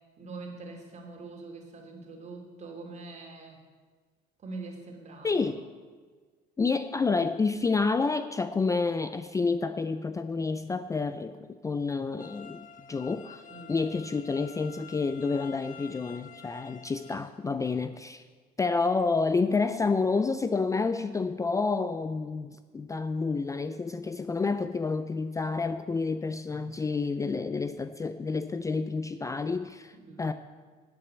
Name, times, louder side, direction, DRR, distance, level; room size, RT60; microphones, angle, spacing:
voice 1, 0.2-3.6 4.4-5.6 13.5-13.7 17.1-17.2 29.9-30.2, right 3 dB, 45° right, 1 dB, 2.8 m, -43 dB
voice 2, 5.2-5.6 6.6-13.4 13.7-18.2 18.6-30.3, left 4 dB, 20° left, 11 dB, 0.4 m, -29 dB
sound 1, 12.2-17.2, left 8 dB, 50° left, 1.0 m, -49 dB
10.0 x 8.8 x 8.0 m, 1.5 s
cardioid pair, 110°, 17 cm